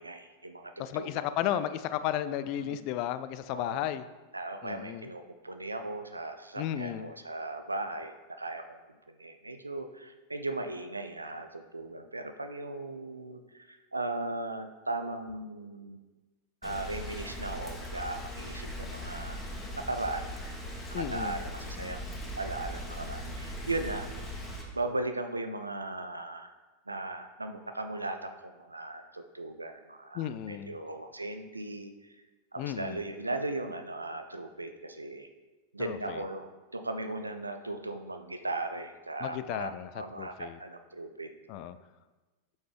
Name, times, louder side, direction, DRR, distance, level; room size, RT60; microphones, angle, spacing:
voice 1, 0.0-1.6 2.5-2.8 3.5-3.9 4.3-8.8 9.2-16.0 16.6-20.3 20.9-22.1 22.4-24.1 24.7-26.5 26.9-32.1 32.5-35.3 35.7-41.3, right 2 dB, 80° right, 7 dB, 0.5 m, -37 dB
voice 2, 0.8-4.1 4.6-5.1 6.6-7.1 20.9-21.4 30.1-30.7 32.6-33.0 35.8-36.2 39.2-39.9 40.2-40.6 41.5-41.8, left 11 dB, 45° left, 13 dB, 0.3 m, -34 dB
Rain, 16.6-24.6, equal, 15° left, 1.6 m, -39 dB
8.0 x 5.8 x 3.4 m, 1.2 s
figure-of-eight pair, 90°, 0 cm